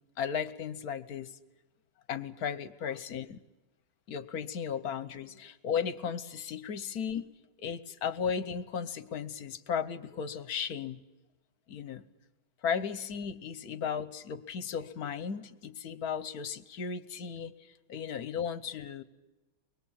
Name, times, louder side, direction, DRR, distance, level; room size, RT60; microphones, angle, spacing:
voice 1, 0.2-1.4 2.1-3.4 4.1-7.3 7.6-11.0 11.7-12.0 12.6-17.5 17.9-19.0, left 7 dB, 55° left, 13 dB, 1.2 m, -35 dB
24.0 x 20.5 x 8.8 m, 1.1 s
omnidirectional pair, 2.3 m